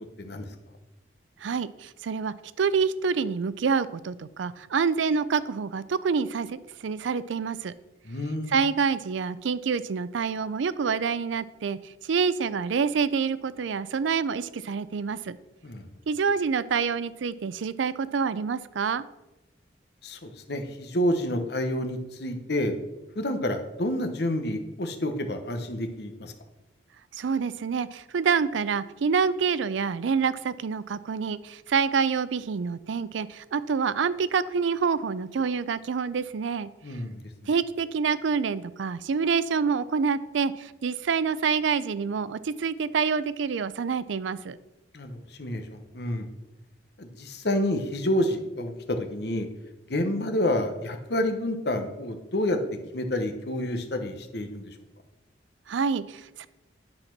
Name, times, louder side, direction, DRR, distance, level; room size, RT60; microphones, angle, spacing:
voice 1, 1.4-7.7 8.5-15.4 16.1-19.0 27.1-36.7 37.5-44.6 55.7-56.5, right 5 dB, 85° right, 16 dB, 0.4 m, -27 dB
voice 2, 8.0-8.5 15.6-15.9 20.0-22.7 23.2-26.3 36.8-37.2 44.9-46.3 47.0-49.5 49.9-52.6 52.9-54.7, left 1 dB, 60° left, 6 dB, 1.0 m, -29 dB
10.5 x 4.3 x 5.9 m, 1.0 s
head